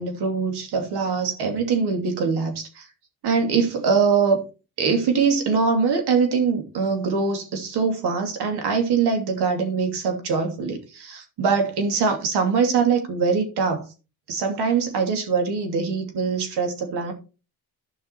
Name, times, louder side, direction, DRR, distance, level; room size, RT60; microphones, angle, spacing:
voice 1, 0.0-2.9 3.2-4.4 4.8-13.8 14.3-17.1, right 5 dB, 75° right, 2.8 m, -23 dB
11.5 x 5.8 x 4.4 m
cardioid pair, 135°, 40 cm